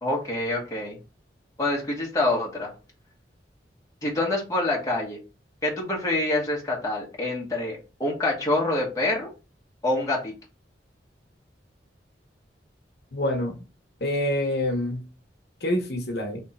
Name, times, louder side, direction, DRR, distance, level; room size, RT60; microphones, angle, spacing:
voice 1, 0.0-1.0 1.6-2.7 4.0-5.2 5.6-9.3 9.8-10.3, left 2 dB, 20° left, 1.3 m, -26 dB
voice 2, 13.1-13.6 14.0-15.0 15.6-16.4, left 1 dB, 65° left, 1.0 m, -26 dB
3.5 x 3.1 x 4.1 m
head